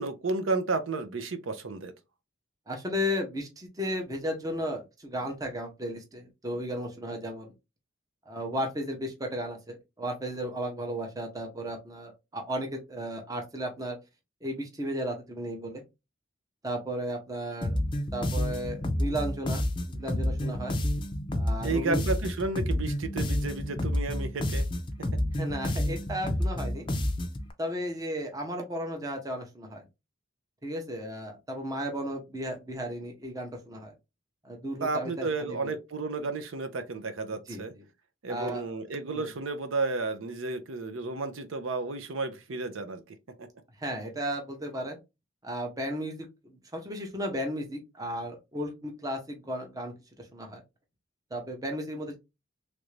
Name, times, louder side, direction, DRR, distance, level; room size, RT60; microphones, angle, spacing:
voice 1, 0.0-1.9 21.6-24.6 34.8-37.7 38.2-43.0 43.4-43.5, right 3 dB, 80° right, 0.6 m, -32 dB
voice 2, 2.7-7.5 8.3-14.0 14.4-15.8 16.6-17.8 18.1-20.7 21.3-22.0 25.4-26.9 27.6-29.8 30.6-33.9 34.4-35.7 37.5-37.8 38.3-38.7 39.1-39.3 43.8-45.0 45.4-49.9 50.2-50.6 51.3-52.2, equal, 20° right, 0.7 m, -34 dB
sound 1, 17.6-27.5, left 1 dB, 25° left, 0.5 m, -29 dB
3.2 x 2.5 x 3.1 m
head